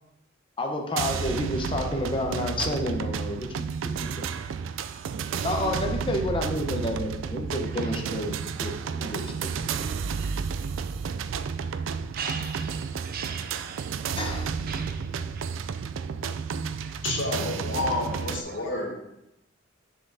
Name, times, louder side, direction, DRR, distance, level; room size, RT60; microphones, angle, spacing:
voice 1, 0.6-3.5 4.0-4.3 5.4-8.4 8.6-9.3 9.6-9.7 14.2-14.4, left 1 dB, 25° left, 0.9 m, -30 dB
sound 1, 1.0-18.4, right 6 dB, 75° right, 0.3 m, -31 dB
voice 2, 4.9-5.4 7.7-8.0 10.1-10.4 12.1-14.1 14.7-15.1 15.4-15.5 16.8-17.0 17.9-18.0 18.5-18.9, right 6 dB, 50° right, 0.6 m, -40 dB
voice 3, 17.0-18.9, left 2 dB, 70° left, 1.6 m, -29 dB
7.0 x 6.9 x 2.7 m
head